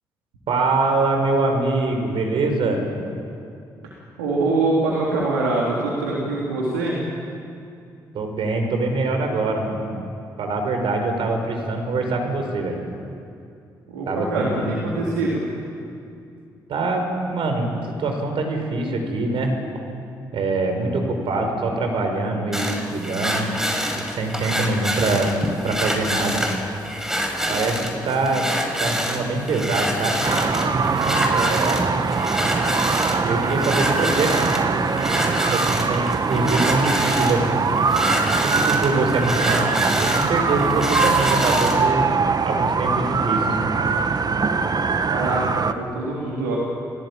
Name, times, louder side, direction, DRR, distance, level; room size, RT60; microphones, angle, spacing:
voice 1, 0.5-2.9 8.1-9.8 10.4-12.8 14.1-14.8 16.7-19.5 20.3-23.5 24.0-25.3 25.6-26.4 27.5-27.8 28.0-28.5 28.8-30.2 31.3-31.9 33.2-34.5 35.5-37.7 38.4-42.1 42.4-43.5, right 3 dB, 65° right, 4 dB, 5.5 m, -24 dB
voice 2, 3.8-6.9 13.9-15.4 45.1-46.6, right 2 dB, 90° right, -4 dB, 3.5 m, -24 dB
sound 1, 22.5-41.9, equal, 5° right, 6.0 m, -26 dB
sound 2, 30.2-45.7, right 4 dB, 40° right, 1.7 m, -22 dB
30.0 x 17.5 x 8.8 m, 2.5 s
hypercardioid pair, 45°, 10 cm